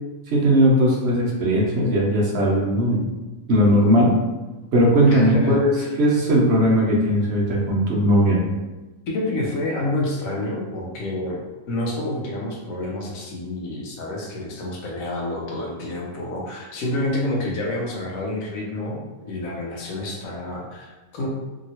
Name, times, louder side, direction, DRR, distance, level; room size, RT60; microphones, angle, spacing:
voice 1, 0.3-3.1 3.5-4.1 4.7-5.7 6.0-8.4, equal, 55° right, -3 dB, 0.9 m, -18 dB
voice 2, 5.1-5.9 9.1-21.3, left 1 dB, 75° left, -2 dB, 1.0 m, -28 dB
2.8 x 2.7 x 2.8 m, 1.1 s
omnidirectional pair, 1.5 m